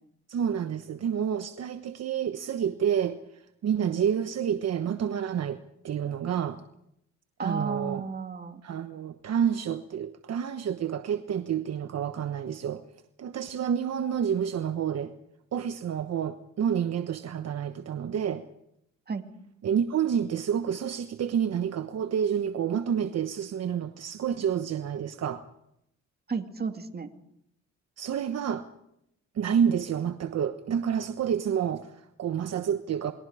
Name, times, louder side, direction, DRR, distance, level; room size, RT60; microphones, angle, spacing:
voice 1, 0.3-3.2 3.6-5.6 5.8-6.6 7.4-8.0 8.6-12.8 13.2-15.1 15.5-18.4 19.6-25.4 28.0-28.7 29.3-33.1, right 8 dB, 55° right, 8 dB, 1.2 m, -29 dB
voice 2, 7.4-8.6 19.1-19.2 26.3-27.1, right 5 dB, 30° right, 6 dB, 2.4 m, -33 dB
28.0 x 21.0 x 5.0 m, 0.77 s
cardioid pair, 90°, 30 cm